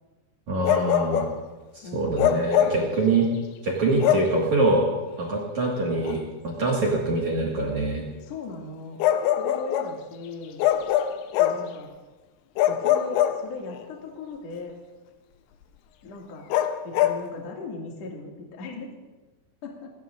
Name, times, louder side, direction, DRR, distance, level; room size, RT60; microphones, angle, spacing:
voice 1, 0.5-1.3 1.7-3.3 3.6-4.9 5.2-8.0, right 2 dB, 55° right, -3 dB, 2.2 m, -24 dB
Bark, 0.6-1.4 2.2-2.9 4.0-4.4 6.0-6.2 9.0-10.0 10.6-11.7 12.6-13.8 16.5-17.2, left 11 dB, 85° left, 3.4 m, -23 dB
voice 2, 1.8-2.3 2.8-3.3 8.2-9.0 9.4-10.7 11.4-11.9 12.7-14.8 16.0-16.4 16.8-18.9 19.6-19.9, left 3 dB, 45° left, -1 dB, 2.5 m, -38 dB
28.0 x 17.0 x 2.6 m, 1.2 s
omnidirectional pair, 5.9 m